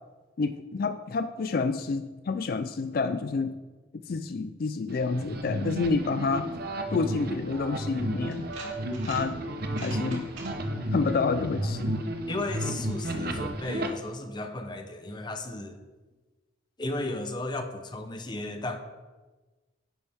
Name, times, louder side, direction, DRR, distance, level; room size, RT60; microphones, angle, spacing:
voice 1, 0.4-3.5 4.1-6.5 6.9-8.5 9.1-9.4 9.8-10.3 10.9-12.0, left 4 dB, 45° left, 10 dB, 0.4 m, -28 dB
sound 1, 4.9-13.9, right 1 dB, 50° right, 0.9 m, -33 dB
sound 2, 7.5-7.6 8.3-9.2 9.6-10.5, right 3 dB, 70° right, 2.9 m, -43 dB
voice 2, 12.3-15.8 16.8-18.8, left 2 dB, 20° left, 6 dB, 0.7 m, -34 dB
10.5 x 9.1 x 3.5 m, 1.2 s
head